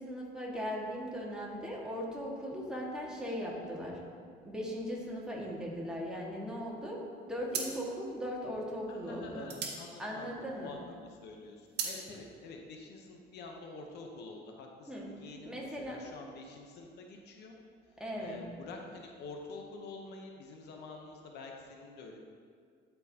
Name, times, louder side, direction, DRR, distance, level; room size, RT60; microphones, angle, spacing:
voice 1, 0.0-4.0 4.4-7.0 7.3-9.5 10.0-10.7 14.9-15.1 15.4-16.0 18.0-18.4, equal, 5° right, -4 dB, 1.7 m, -38 dB
sound 1, 6.8-7.1 7.5-10.8 11.2-12.0, right 5 dB, 65° right, 1.2 m, -39 dB
voice 2, 8.9-17.5 18.2-22.2, left 3 dB, 70° left, 2 dB, 0.9 m, -47 dB
11.5 x 4.6 x 2.8 m, 2.1 s
cardioid pair, 95°, 18 cm